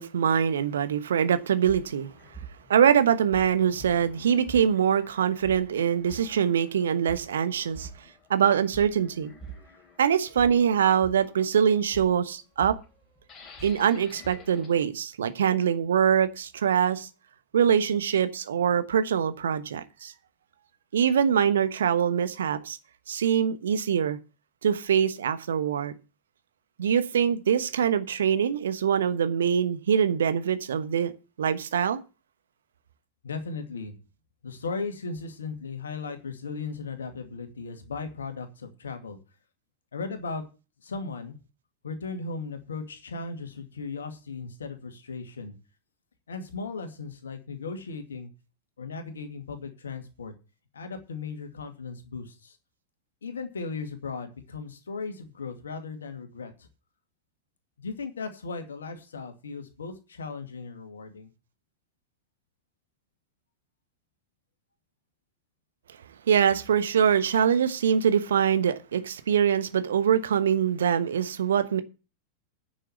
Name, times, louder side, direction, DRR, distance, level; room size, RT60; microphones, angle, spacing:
voice 1, 0.0-2.1 2.7-7.9 8.3-9.3 10.0-12.7 13.6-17.1 17.5-20.1 20.9-22.8 23.1-24.2 24.6-25.9 26.8-31.1 31.4-32.0 66.3-71.8, right 8 dB, 65° right, 1.1 m, -24 dB
sound 1, 1.6-14.8, right 3 dB, 25° left, 3.2 m, -46 dB
voice 2, 33.2-34.0 34.4-39.2 39.9-40.4 40.8-41.4 41.8-45.5 46.3-48.3 48.8-50.3 50.7-52.6 53.2-56.5 57.8-61.3, left 4 dB, 70° left, 2.3 m, -37 dB
10.0 x 6.4 x 7.9 m
figure-of-eight pair, 90°, 0 cm